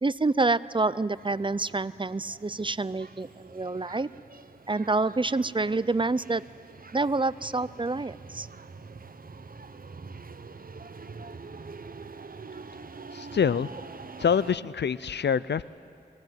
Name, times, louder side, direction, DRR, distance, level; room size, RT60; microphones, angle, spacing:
voice 1, 0.0-4.1 4.7-6.4 6.9-8.5, right 3 dB, 30° right, 18 dB, 0.5 m, -27 dB
sound 1, 1.1-14.6, right 4 dB, 55° right, 0.8 m, -45 dB
voice 2, 13.1-13.7 14.2-15.6, left 7 dB, 80° left, 18 dB, 0.5 m, -25 dB
22.5 x 17.5 x 9.3 m, 2.4 s
wide cardioid pair, 50°, 17 cm